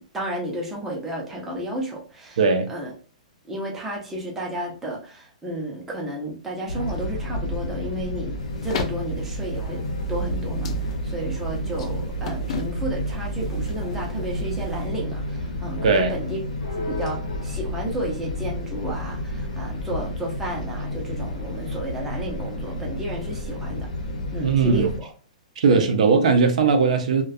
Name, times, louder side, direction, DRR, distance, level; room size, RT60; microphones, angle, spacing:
voice 1, 0.0-2.4 2.7-2.9 3.5-8.3 8.6-9.8 10.1-10.7 11.0-23.9 24.3-25.1 25.7-25.9, right 1 dB, 5° right, 0.4 m, -32 dB
voice 2, 2.4-2.7 15.8-16.1 24.4-24.9 25.6-27.2, right 5 dB, 65° right, 0.4 m, -19 dB
sound 1, 6.7-25.0, equal, 75° left, 0.7 m, -30 dB
sound 2, 8.4-14.9, left 5 dB, 50° left, 0.4 m, -38 dB
2.4 x 2.1 x 2.5 m
hypercardioid pair, 170°, 4 cm